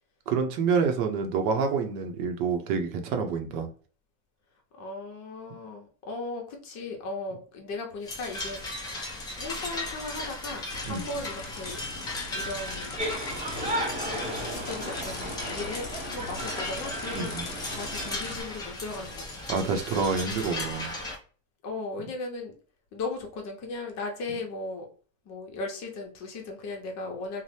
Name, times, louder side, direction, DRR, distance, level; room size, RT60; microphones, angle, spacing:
voice 1, 0.3-3.7 10.9-11.0 17.1-17.4 19.5-20.9, right 5 dB, 55° right, 5 dB, 0.7 m, -27 dB
voice 2, 4.7-8.6 9.4-11.8 12.3-12.9 13.5-19.5 21.6-22.5 22.9-24.9 25.3-27.4, left 3 dB, 40° left, 2 dB, 0.9 m, -37 dB
sound 1, 8.0-21.2, left 2 dB, 10° left, 0.3 m, -36 dB
sound 2, 10.7-18.4, left 4 dB, 55° left, 1.1 m, -42 dB
sound 3, 13.0-18.2, equal, 15° right, 0.8 m, -35 dB
2.7 x 2.1 x 3.2 m, 0.39 s
supercardioid pair, 130°, 42 cm